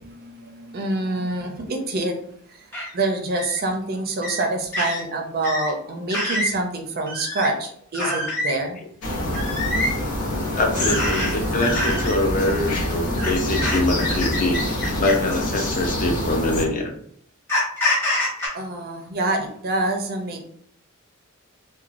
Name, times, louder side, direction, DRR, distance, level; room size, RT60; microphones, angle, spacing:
voice 1, 0.2-2.2 2.5-2.6 2.9-8.8 10.8-11.0 11.3-11.5 18.5-20.4, right 2 dB, 45° right, 3 dB, 0.4 m, -26 dB
sound 1, 2.7-2.9 3.4-3.6 4.2-4.4 4.7-5.0 5.4-5.7 6.1-6.5 7.1-7.5 7.9-8.5 9.3-9.9 10.8-11.3 11.6-12.1 13.2-15.3 16.2-16.3 17.5-18.5, left 1 dB, 10° left, 0.8 m, -26 dB
sound 2, 9.0-16.6, left 1 dB, 90° left, 0.8 m, -26 dB
voice 2, 10.5-14.6 15.0-16.9, left 2 dB, 35° left, 2 dB, 0.4 m, -24 dB
2.9 x 2.2 x 2.5 m, 0.64 s
head